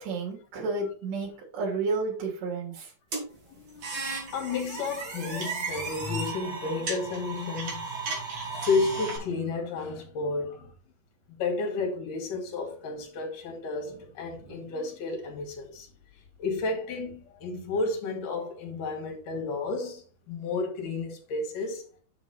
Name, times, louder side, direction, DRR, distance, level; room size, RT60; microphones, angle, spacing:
voice 1, 0.0-2.9 14.4-14.6, right 3 dB, 60° right, 4.2 m, -31 dB
sound 1, 3.1-9.2, right 3 dB, 45° right, 3.5 m, -35 dB
voice 2, 3.5-3.9 4.3-8.0 8.5-10.7 11.3-15.9 16.4-21.8, left 3 dB, 60° left, 3.5 m, -32 dB
7.6 x 5.9 x 4.3 m
omnidirectional pair, 4.3 m